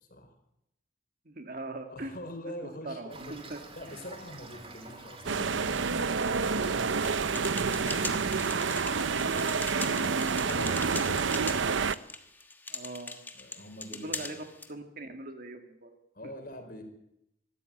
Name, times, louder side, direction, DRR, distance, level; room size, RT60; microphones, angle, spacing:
voice 1, 1.3-2.1 2.6-3.6 3.9-4.0 12.7-13.2 13.9-16.0 16.2-16.3, right 2 dB, 45° right, 6 dB, 2.2 m, -41 dB
voice 2, 1.9-3.4 3.7-11.4 13.3-14.4 16.1-16.8, left 1 dB, 45° left, 5 dB, 4.5 m, -45 dB
Toilet flush / Fill (with liquid), 3.1-11.6, right 2 dB, 30° right, 2.7 m, -48 dB
sound 1, 5.3-12.0, right 5 dB, 65° right, 0.7 m, -28 dB
sound 2, 7.0-14.7, left 3 dB, 10° left, 1.3 m, -41 dB
24.5 x 13.5 x 8.8 m, 0.83 s
head